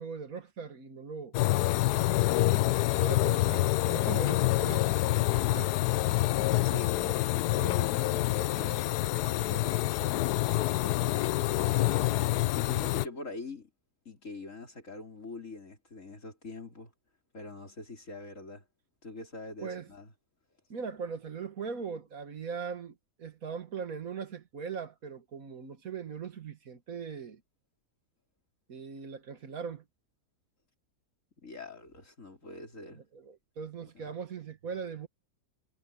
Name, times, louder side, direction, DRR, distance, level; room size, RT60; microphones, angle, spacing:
voice 1, 0.0-1.3 2.9-6.0 7.0-7.2 19.6-19.9 20.7-27.4 28.7-29.8 32.9-35.1, right 6 dB, 60° right, 2.0 m, -40 dB
sound 1, 1.3-13.1, left 17 dB, 85° left, 1.1 m, -27 dB
voice 2, 6.6-13.7 14.0-16.9 17.3-18.6 19.0-20.1 31.4-33.0 33.9-34.1, left 2 dB, 50° left, 4.8 m, -44 dB
omnidirectional pair, 1.7 m